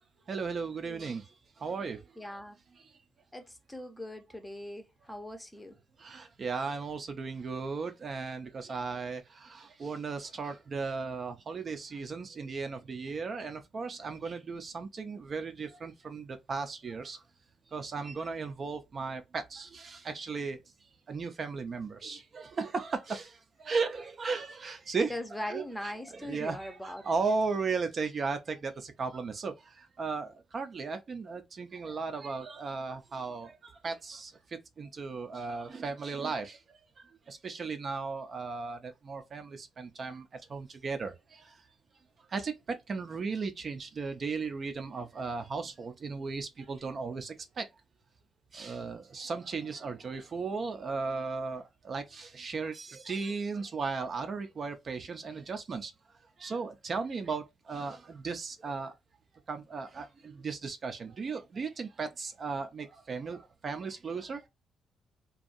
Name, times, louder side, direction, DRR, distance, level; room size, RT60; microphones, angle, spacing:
voice 1, 0.3-2.4 2.8-3.0 6.0-17.2 17.7-41.6 42.3-47.7 48.5-55.9 56.4-58.9 59.5-64.5, right 4 dB, 45° right, 0.5 m, -36 dB
voice 2, 0.8-1.2 2.2-2.6 3.3-5.8 25.1-27.0, left 1 dB, 10° left, 0.6 m, -41 dB
2.6 x 2.3 x 2.4 m
cardioid pair, 90°, 0 cm